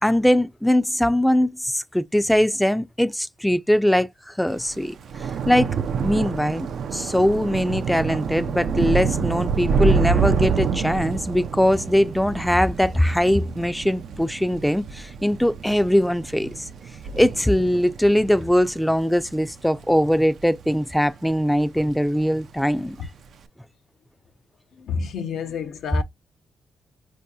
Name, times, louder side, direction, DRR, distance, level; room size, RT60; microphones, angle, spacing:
voice 1, 0.0-5.7 6.0-6.7 6.9-16.7 17.2-23.1, equal, 5° left, 0.4 m, -21 dB
Thunder / Rain, 4.6-21.2 21.5-22.0 22.2-22.4, right 5 dB, 75° right, 0.4 m, -27 dB
voice 2, 24.8-26.0, left 6 dB, 80° left, 0.5 m, -29 dB
4.6 x 2.7 x 2.2 m
cardioid pair, 85°, 0 cm